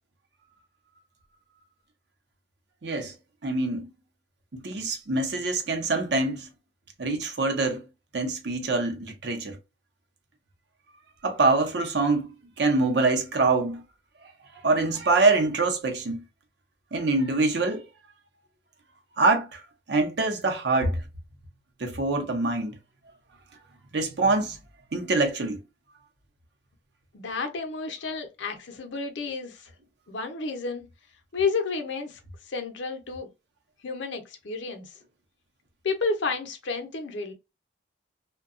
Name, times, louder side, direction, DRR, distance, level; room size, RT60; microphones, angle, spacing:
voice 1, 2.8-3.1 3.4-3.9 4.5-6.4 7.0-7.8 8.1-9.6 11.2-12.3 12.6-13.8 14.6-16.2 16.9-17.9 19.2-19.6 19.9-21.0 21.8-22.7 23.9-24.6 24.9-25.6, right 3 dB, 60° right, 0.6 m, -24 dB
voice 2, 27.1-29.7 30.1-30.9 31.3-32.2 32.5-33.3 33.8-35.0 35.8-37.3, left 4 dB, 75° left, 0.6 m, -31 dB
2.7 x 2.2 x 2.4 m
head